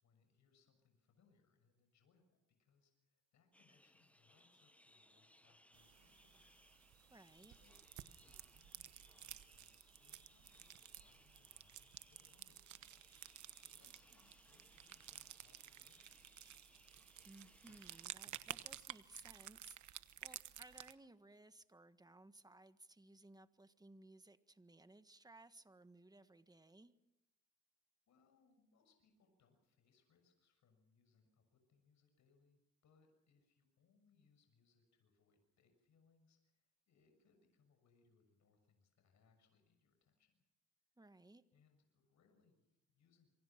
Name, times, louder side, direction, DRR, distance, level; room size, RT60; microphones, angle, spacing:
voice 1, 0.0-7.1 7.4-13.3 13.6-16.2 28.1-40.3 41.5-43.3, left 5 dB, 65° left, 5 dB, 6.8 m, -76 dB
sound 1, 3.5-18.1, left 1 dB, 5° left, 1.0 m, -69 dB
sound 2, 5.7-20.9, right 12 dB, 70° right, 1.2 m, -54 dB
voice 2, 7.1-7.5 17.2-26.9 41.0-41.4, right 2 dB, 15° right, 11 dB, 1.6 m, -61 dB
27.0 x 24.5 x 6.0 m, 0.89 s
cardioid pair, 90°, 30 cm